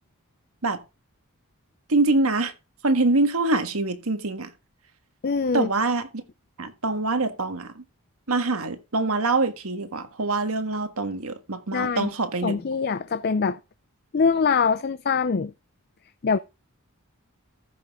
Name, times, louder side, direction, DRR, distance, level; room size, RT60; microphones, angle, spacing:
voice 1, 1.9-2.5 2.8-4.5 5.5-6.2 6.6-7.8 8.3-12.6, right 3 dB, 75° right, 1.5 m, -24 dB
voice 2, 5.2-5.7 11.7-12.1 12.4-13.6 14.1-15.5 16.2-16.4, left 5 dB, 45° left, 0.5 m, -23 dB
14.5 x 6.0 x 3.6 m
head